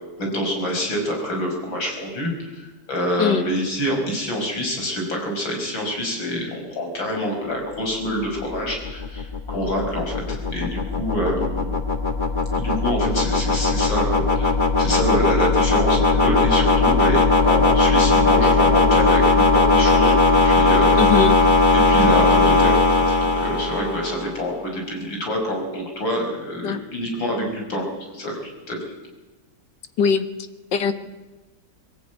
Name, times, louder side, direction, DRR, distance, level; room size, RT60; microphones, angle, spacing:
voice 1, 0.2-11.7 12.6-14.5 14.8-21.0 21.7-27.9 28.1-28.9, equal, 85° left, 1 dB, 6.6 m, -26 dB
voice 2, 3.2-3.5 20.9-21.4 26.6-26.8 30.0-30.3 30.7-30.9, left 6 dB, 65° left, 10 dB, 2.0 m, -20 dB
sound 1, 8.2-24.4, left 3 dB, 25° left, 1.8 m, -18 dB
22.0 x 16.0 x 9.3 m, 1.2 s
omnidirectional pair, 2.1 m